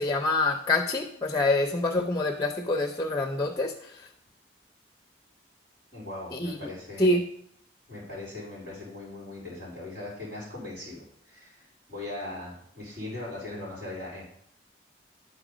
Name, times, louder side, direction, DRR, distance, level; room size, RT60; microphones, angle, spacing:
voice 1, 0.0-4.0 6.3-6.7 7.0-7.2, left 2 dB, 20° left, 4 dB, 0.5 m, -26 dB
voice 2, 5.9-7.1 7.9-14.3, left 2 dB, 60° right, -6 dB, 4.1 m, -39 dB
11.0 x 4.2 x 5.0 m, 0.69 s
head